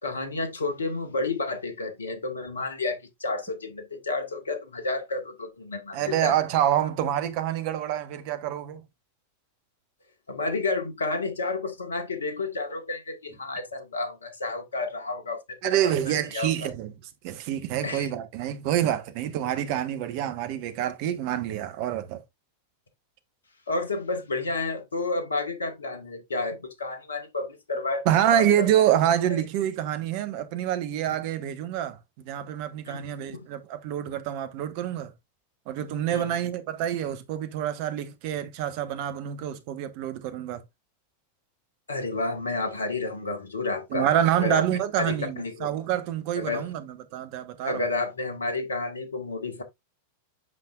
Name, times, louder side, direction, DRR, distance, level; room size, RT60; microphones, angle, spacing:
voice 1, 0.0-6.4 10.3-16.7 17.8-18.1 23.7-28.1 28.3-28.7 31.1-31.2 32.9-33.4 36.1-36.5 41.9-44.1 44.4-44.7 45.0-45.7 46.3-46.7 47.6-49.6, left 3 dB, 70° left, 1.6 m, -31 dB
voice 2, 5.9-8.9 15.6-16.9 17.2-22.2 28.0-32.0 32.2-35.1 35.7-40.6 43.9-47.8, right 11 dB, 45° right, 1.2 m, -27 dB
8.1 x 5.6 x 2.5 m
figure-of-eight pair, 90°, 0 cm